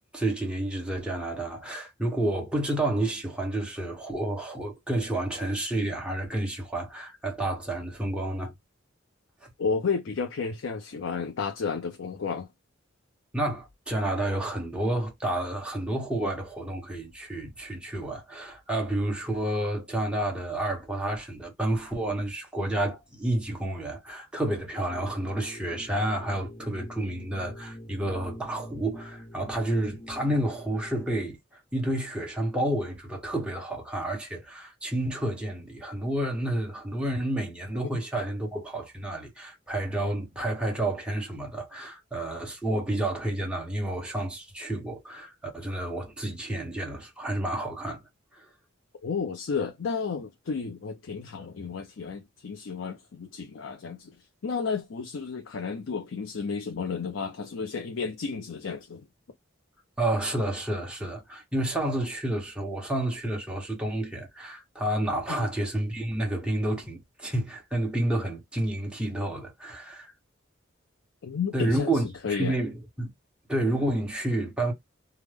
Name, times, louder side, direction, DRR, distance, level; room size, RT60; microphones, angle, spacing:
voice 1, 0.1-8.5 9.4-9.5 13.3-48.0 48.3-48.5 60.0-70.1 71.5-73.1 73.5-74.7, right 1 dB, 5° right, 1.1 m, -30 dB
voice 2, 9.6-12.5 49.0-54.2 54.4-59.1 65.3-65.5 71.2-71.9 72.2-72.6, left 5 dB, 75° left, 0.5 m, -32 dB
sound 1, 24.9-31.2, equal, 30° left, 0.7 m, -44 dB
3.4 x 2.1 x 3.3 m
head